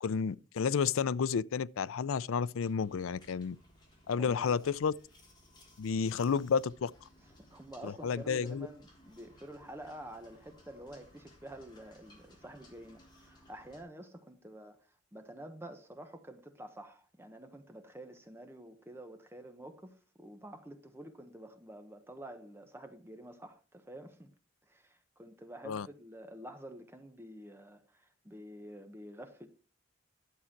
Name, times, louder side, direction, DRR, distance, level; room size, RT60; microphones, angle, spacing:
voice 1, 0.0-3.6 4.1-4.9 5.8-6.9 7.8-8.7 25.6-25.9, left 6 dB, 90° left, 0.4 m, -31 dB
sound 1, 2.6-13.8, left 1 dB, 20° left, 3.3 m, -61 dB
voice 2, 4.2-4.7 7.5-24.3 24.7-29.5, right 1 dB, 10° right, 1.0 m, -49 dB
11.5 x 7.0 x 4.4 m
head